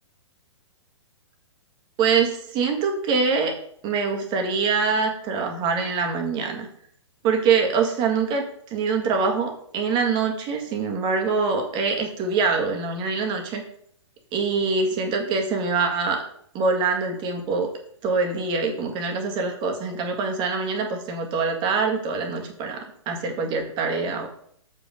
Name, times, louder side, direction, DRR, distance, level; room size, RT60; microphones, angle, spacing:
voice 1, 2.0-3.5 3.8-6.7 7.2-8.4 8.7-13.6 14.3-16.2 16.5-17.7 18.0-24.3, right 5 dB, 30° right, 3 dB, 1.7 m, -24 dB
7.5 x 5.3 x 5.1 m, 0.66 s
figure-of-eight pair, 120°, 16 cm